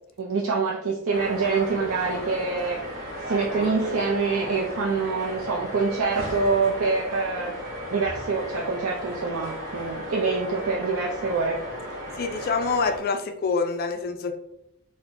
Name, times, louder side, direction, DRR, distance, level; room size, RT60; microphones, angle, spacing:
voice 1, 0.2-2.8 3.2-7.5 7.9-11.6, right 4 dB, 65° right, -2 dB, 0.5 m, -25 dB
sound 1, 1.1-13.0, equal, 40° right, 0.9 m, -35 dB
voice 2, 12.2-14.4, left 4 dB, 40° left, 6 dB, 0.3 m, -26 dB
4.4 x 2.1 x 2.6 m, 0.80 s
head